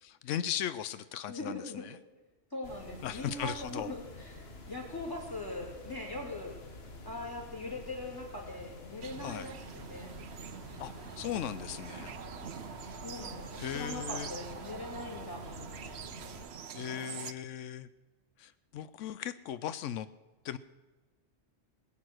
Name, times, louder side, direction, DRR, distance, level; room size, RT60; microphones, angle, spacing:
voice 1, 0.0-2.0 3.0-3.9 9.2-9.5 10.8-10.9 11.2-12.1 13.6-14.3 16.7-17.9 18.4-20.1 20.4-20.6, left 10 dB, 90° left, 14 dB, 1.0 m, -37 dB
voice 2, 1.3-1.8 2.5-6.5 7.0-10.2 13.0-16.1, left 2 dB, 15° left, 0 dB, 3.3 m, -41 dB
sound 1, 2.6-16.5, left 2 dB, 55° left, 1.8 m, -49 dB
sound 2, 9.0-17.3, right 7 dB, 65° right, 1.0 m, -45 dB
21.5 x 8.7 x 6.3 m, 1.2 s
omnidirectional pair, 1.2 m